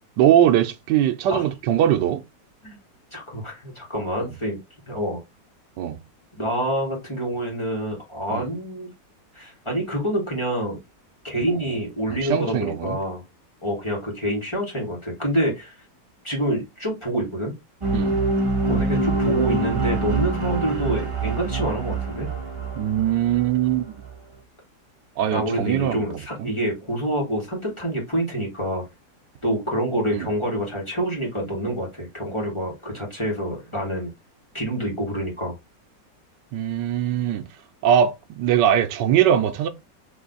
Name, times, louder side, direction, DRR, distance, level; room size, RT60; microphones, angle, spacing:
voice 1, 0.2-2.2 4.2-4.3 5.8-6.0 8.3-8.5 12.1-13.0 17.9-18.1 22.8-23.9 25.2-26.1 26.4-26.5 30.1-30.3 36.5-37.5 37.8-39.7, right 10 dB, 80° right, 1.3 m, -21 dB
voice 2, 3.1-4.6 4.9-5.2 6.4-8.9 9.3-10.8 11.2-13.2 13.6-15.7 16.2-17.5 18.6-22.3 25.3-28.9 29.4-34.1 34.5-35.5, right 1 dB, 15° left, 1.8 m, -27 dB
sound 1, 17.8-24.1, right 3 dB, 35° right, 0.5 m, -25 dB
4.3 x 3.1 x 3.9 m
omnidirectional pair, 1.9 m